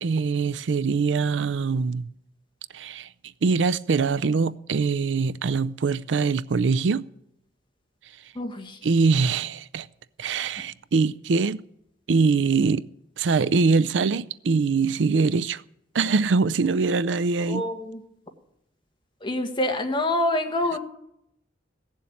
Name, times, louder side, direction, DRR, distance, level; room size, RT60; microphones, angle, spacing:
voice 1, 0.0-2.1 2.7-3.1 3.4-7.1 8.8-9.9 10.2-11.6 12.1-12.8 13.2-15.6 15.9-17.6, right 4 dB, 85° right, 0.4 m, -23 dB
voice 2, 8.3-8.8 17.4-18.0 19.2-20.8, left 1 dB, 25° left, 1.5 m, -26 dB
16.0 x 7.2 x 8.5 m
head